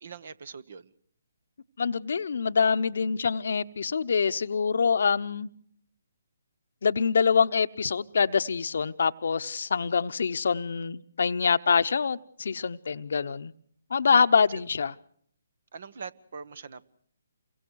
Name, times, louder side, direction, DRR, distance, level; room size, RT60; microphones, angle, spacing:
voice 1, 0.0-0.9 14.5-14.6 15.7-16.9, right 5 dB, 60° right, 1.2 m, -42 dB
voice 2, 1.8-5.5 6.8-13.5 13.9-14.9, left 5 dB, 65° left, 0.9 m, -25 dB
28.5 x 23.5 x 4.7 m
figure-of-eight pair, 145°, 0 cm